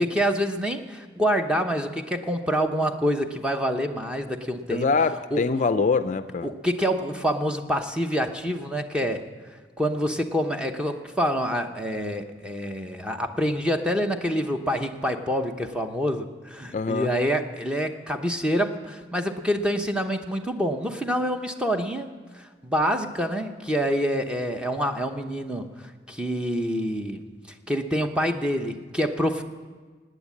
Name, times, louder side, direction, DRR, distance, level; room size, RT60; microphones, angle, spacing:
voice 1, 0.0-4.9 5.3-5.4 6.4-9.2 9.8-22.1 22.3-25.7 26.1-27.2 27.7-29.4, equal, 5° right, 5 dB, 0.9 m, -26 dB
voice 2, 4.7-6.5 16.7-17.1, left 4 dB, 40° left, 12 dB, 0.4 m, -24 dB
18.0 x 9.2 x 8.4 m, 1.4 s
head